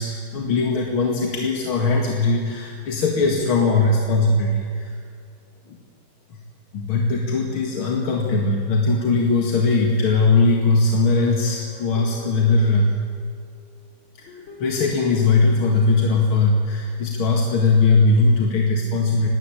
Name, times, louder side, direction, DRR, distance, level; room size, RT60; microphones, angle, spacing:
voice 1, 0.0-4.9 6.7-13.0 14.2-14.3 14.6-19.3, left 3 dB, 90° left, 0 dB, 2.7 m, -20 dB
Guitar, 11.1-13.5 14.2-16.2, left 1 dB, 70° left, 4.8 m, -44 dB
20.0 x 17.5 x 8.7 m, 2.4 s
omnidirectional pair, 2.2 m